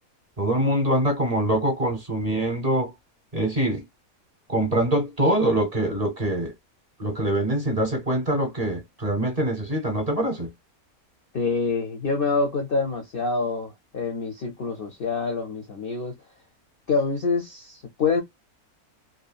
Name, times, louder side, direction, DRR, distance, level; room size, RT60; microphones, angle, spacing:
voice 1, 0.4-2.9 3.3-3.8 4.5-6.5 7.0-10.5, right 1 dB, 30° right, 1.0 m, -24 dB
voice 2, 11.3-16.2 16.9-18.2, left 4 dB, 50° left, 0.7 m, -26 dB
3.0 x 2.4 x 2.3 m
omnidirectional pair, 1.5 m